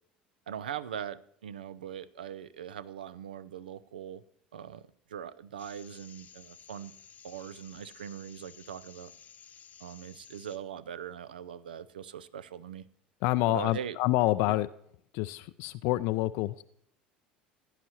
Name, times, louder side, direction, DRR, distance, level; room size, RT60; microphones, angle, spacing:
voice 1, 0.5-4.2 4.5-6.9 7.2-9.1 9.8-12.9 13.5-14.0 14.5-14.6, right 9 dB, 75° right, 16 dB, 0.5 m, -41 dB
sound 1, 5.6-10.6, left 8 dB, 30° left, 0.8 m, -54 dB
voice 2, 13.2-14.7 15.1-16.6, left 17 dB, 55° left, 13 dB, 0.4 m, -27 dB
16.5 x 9.8 x 2.9 m, 0.67 s
figure-of-eight pair, 70°, 5 cm